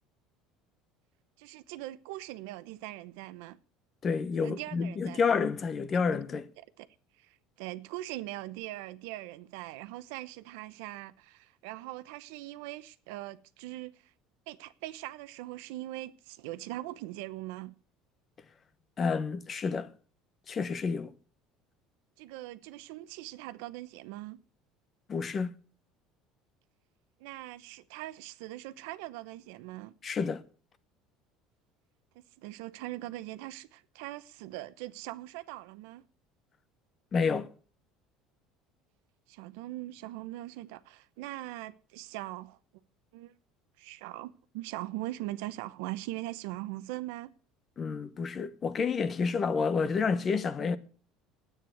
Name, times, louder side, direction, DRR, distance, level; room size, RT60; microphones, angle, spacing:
voice 1, 1.4-3.6 4.4-5.3 6.6-6.9 7.2-13.9 14.5-17.7 22.2-24.4 27.2-29.9 32.1-36.0 39.3-42.6 43.1-43.3 43.8-47.3, right 16 dB, 85° right, 0.9 m, -41 dB
voice 2, 4.0-6.5 19.0-19.9 20.5-21.1 25.1-25.5 30.0-30.4 37.1-37.5 47.8-50.8, left 5 dB, 25° left, 0.8 m, -29 dB
10.5 x 9.1 x 7.8 m
cardioid pair, 160°, 0 cm